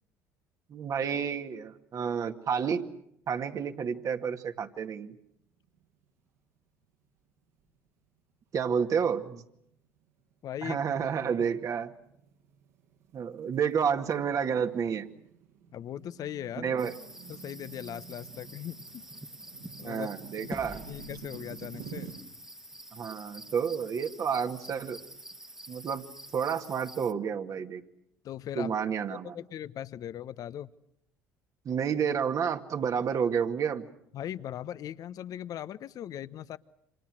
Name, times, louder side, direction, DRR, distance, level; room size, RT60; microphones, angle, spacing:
voice 1, 0.7-2.9 3.3-5.1 8.5-9.4 10.6-11.9 13.1-15.1 16.6-16.9 19.8-20.8 22.9-25.0 25.7-26.0 26.3-27.8 28.6-29.4 31.6-33.9, right 7 dB, 50° right, 6 dB, 2.3 m, -30 dB
sound 1, 5.7-6.2 6.6-6.7 7.4-7.9 8.4-8.6 9.3-22.1, right 7 dB, 80° right, 6.6 m, -50 dB
voice 2, 10.4-10.8 15.7-16.8 17.3-19.0 19.8-20.1 20.4-22.1 28.2-28.9 29.3-30.7 34.1-36.6, left 11 dB, 55° left, 15 dB, 1.1 m, -39 dB
sound 2, 16.8-27.1, right 1 dB, 5° right, 1.7 m, -48 dB
sound 3, 20.5-23.1, left 2 dB, 15° left, 1.5 m, -46 dB
29.5 x 27.0 x 6.4 m, 0.77 s
hypercardioid pair, 65°, 8 cm